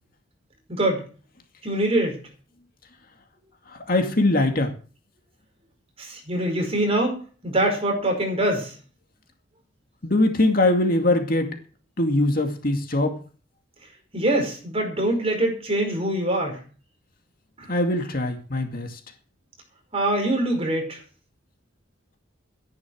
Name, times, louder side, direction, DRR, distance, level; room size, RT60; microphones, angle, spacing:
voice 1, 0.7-1.0 1.6-2.2 6.0-8.7 14.1-16.6 17.6-17.7 19.9-21.0, right 1 dB, 30° right, 2 dB, 5.0 m, -24 dB
voice 2, 3.9-4.7 10.0-11.5 12.0-13.1 17.7-19.0, left 2 dB, 50° left, 4 dB, 2.3 m, -22 dB
13.0 x 11.0 x 6.4 m, 0.38 s
head